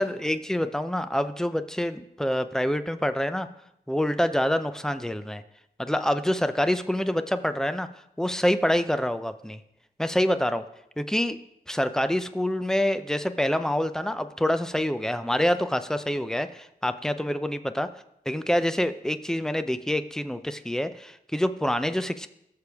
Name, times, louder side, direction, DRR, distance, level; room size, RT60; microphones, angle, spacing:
voice 1, 0.0-3.5 3.9-5.4 5.8-7.9 8.2-9.6 10.0-10.6 11.0-11.4 11.7-17.9 18.3-22.3, equal, 5° left, 11 dB, 0.6 m, -26 dB
17.5 x 6.7 x 3.5 m, 0.80 s
wide cardioid pair, 85°, 16 cm